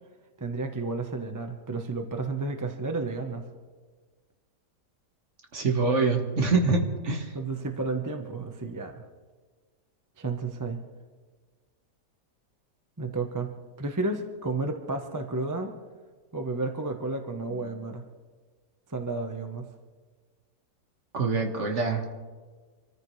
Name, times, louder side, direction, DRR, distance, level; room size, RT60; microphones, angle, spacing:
voice 1, 0.4-3.4 7.3-9.0 10.2-10.8 13.0-13.5 13.8-15.7 16.3-18.0 18.9-19.7, right 3 dB, 15° right, 5 dB, 0.7 m, -32 dB
voice 2, 5.5-7.3 21.1-22.2, right 4 dB, 45° right, 3 dB, 1.8 m, -25 dB
26.5 x 14.0 x 3.3 m, 1.4 s
omnidirectional pair, 1.8 m